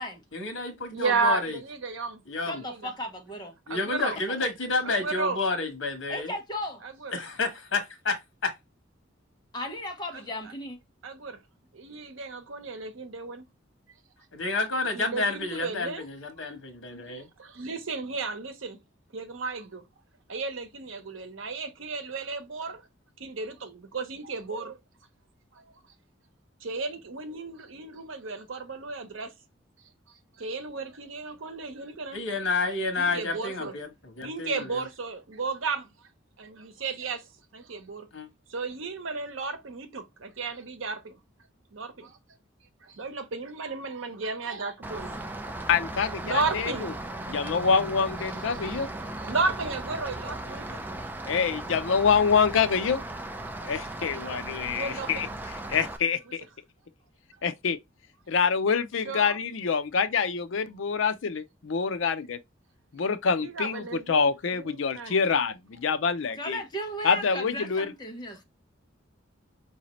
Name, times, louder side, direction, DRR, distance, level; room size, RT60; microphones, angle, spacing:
voice 1, 0.3-1.6 2.3-2.6 3.7-6.3 7.1-8.5 14.3-17.3 32.1-34.8 38.1-38.3, left 3 dB, 90° left, 1.2 m, -30 dB
voice 2, 0.9-2.2 2.5-2.9 3.7-4.2 4.8-5.4 6.8-7.1 10.1-10.2 11.0-11.4 11.7-13.4 14.9-16.1 16.4-16.5 17.1-18.8 19.1-19.8 20.3-22.8 23.2-24.8 25.5-25.6 26.6-29.3 30.1-32.2 33.0-33.8 34.2-35.9 36.4-38.1 38.5-41.2 41.7-42.2 42.8-45.3 46.2-46.9 48.3-50.8 54.7-55.3 59.0-59.4 63.4-65.2, right 4 dB, 85° right, 0.8 m, -34 dB
voice 3, 2.5-3.6 4.0-4.1 6.1-6.8 9.5-10.8 66.4-68.4, left 1 dB, 20° left, 1.1 m, -36 dB
Rain, 44.8-56.0, right 1 dB, 10° right, 0.4 m, -37 dB
voice 4, 45.7-46.9 47.3-48.9 51.2-53.0 53.6-55.3 55.7-56.4 57.4-57.8 58.3-62.4 62.9-66.6 67.0-67.9, left 6 dB, 75° left, 0.5 m, -26 dB
4.9 x 2.7 x 3.0 m
head